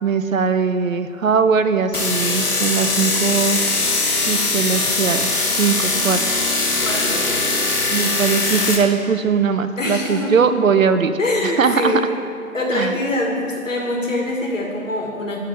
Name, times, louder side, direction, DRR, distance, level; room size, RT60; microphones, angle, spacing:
voice 1, 0.0-3.6 4.3-5.3 5.6-6.2 7.9-12.0 12.7-12.9, right 6 dB, 65° right, 10 dB, 0.5 m, -20 dB
sound 1, 1.9-8.8, left 3 dB, 85° left, 1.4 m, -21 dB
voice 2, 6.8-7.6 9.8-10.3 11.2-12.0 12.5-15.4, left 2 dB, 60° left, -1 dB, 1.7 m, -24 dB
9.0 x 3.5 x 6.5 m, 2.4 s
figure-of-eight pair, 165°, 44 cm